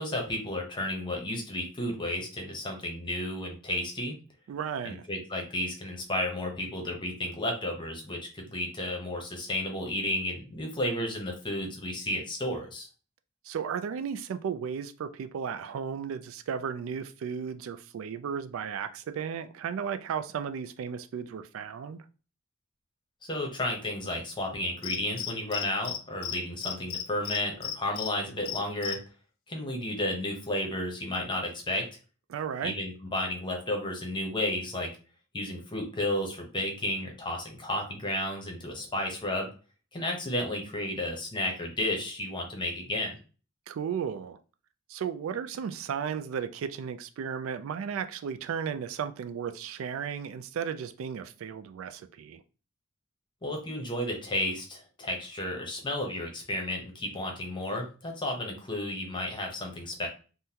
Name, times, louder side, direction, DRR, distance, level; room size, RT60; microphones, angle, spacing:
voice 1, 0.0-4.1 4.8-12.9 23.2-29.0 29.5-31.9 32.6-34.9 35.3-39.5 39.9-43.1 53.4-60.1, left 1 dB, 25° left, 0.8 m, -32 dB
voice 2, 4.5-5.0 13.4-22.0 32.3-32.7 43.7-44.4 44.9-52.4, right 7 dB, 75° right, 0.3 m, -34 dB
Cricket, 24.8-26.0 26.2-26.4 26.6-28.1 28.5-28.9, left 10 dB, 80° left, 0.5 m, -34 dB
3.6 x 2.1 x 2.8 m
head